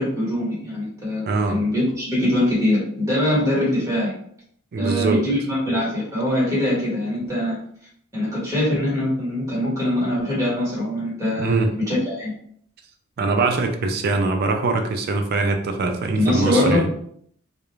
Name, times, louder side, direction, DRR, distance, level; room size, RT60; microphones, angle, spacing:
voice 1, 0.0-4.1 4.8-7.6 8.1-12.3 16.1-17.0, left 1 dB, 15° right, -6 dB, 1.1 m, -23 dB
voice 2, 1.3-1.6 4.7-5.2 11.4-11.7 13.2-16.8, right 3 dB, 50° right, 5 dB, 0.3 m, -22 dB
2.3 x 2.0 x 3.0 m, 0.64 s
head